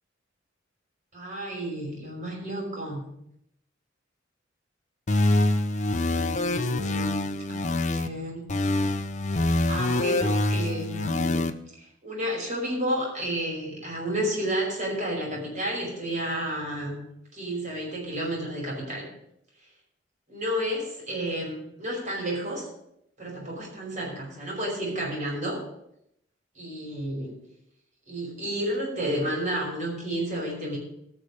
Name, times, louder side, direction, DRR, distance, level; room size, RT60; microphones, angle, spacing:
voice 1, 1.1-3.1 6.1-8.4 9.4-17.0 17.3-19.1 20.3-22.7 23.2-25.6 26.6-27.4 28.1-30.8, right 1 dB, 40° right, -2 dB, 5.6 m, -31 dB
sound 1, 5.1-8.1 8.5-11.5, left 2 dB, 40° left, 0.7 m, -25 dB
19.0 x 6.6 x 5.0 m, 0.77 s
head